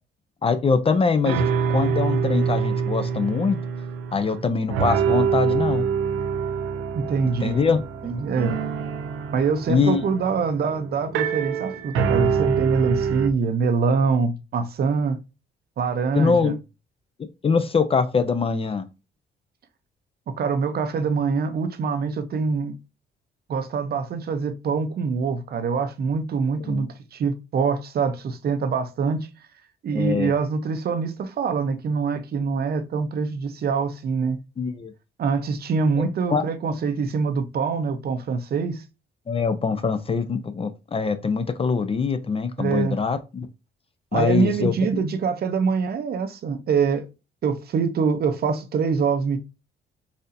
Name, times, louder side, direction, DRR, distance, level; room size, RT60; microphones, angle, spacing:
voice 1, 0.4-3.6 4.1-5.9 7.4-7.8 9.7-10.0 16.1-16.6 17.4-18.8 26.7-26.8 29.9-30.3 34.6-34.9 36.0-36.4 39.3-43.5 44.1-45.0, left 5 dB, 30° left, 0.5 m, -23 dB
sound 1, 1.0-1.1 1.2-4.4 4.7-13.3, right 6 dB, 90° right, 0.5 m, -25 dB
voice 2, 6.9-7.6 8.0-8.5 9.3-15.2 15.8-16.5 20.3-22.8 23.5-29.3 29.8-34.4 35.2-38.8 42.6-43.0 44.1-47.1 47.4-49.4, right 5 dB, 50° right, 0.7 m, -24 dB
4.1 x 2.7 x 2.6 m
cardioid pair, 90°, 20 cm